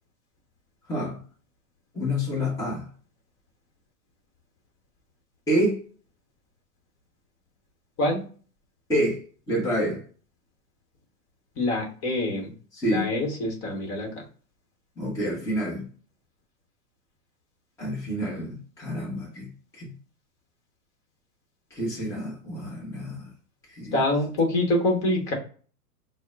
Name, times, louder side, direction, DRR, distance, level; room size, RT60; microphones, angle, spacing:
voice 1, 0.9-1.2 1.9-2.9 5.5-5.8 8.9-10.0 12.7-13.1 15.0-15.9 17.8-19.5 19.8-19.9 21.7-23.3 23.7-24.0, equal, 5° left, 0.8 m, -28 dB
voice 2, 11.6-12.5 12.8-14.2 23.9-25.3, left 1 dB, 30° left, 1.3 m, -25 dB
6.0 x 2.2 x 2.4 m
hypercardioid pair, 120°, 47 cm